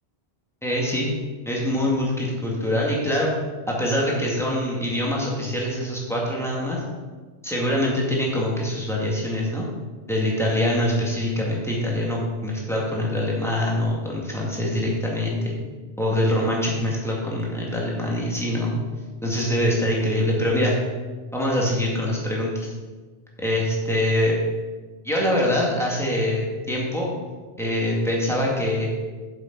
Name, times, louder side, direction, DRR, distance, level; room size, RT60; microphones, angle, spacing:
voice 1, 0.6-1.1 1.5-3.3 3.7-6.8 7.4-9.7 10.1-15.5 16.0-18.8 19.2-20.8 21.3-22.7 23.4-24.4 25.0-27.1 27.6-28.9, left 1 dB, ahead, -4 dB, 2.1 m, -24 dB
8.1 x 7.3 x 5.4 m, 1.4 s
omnidirectional pair, 1.1 m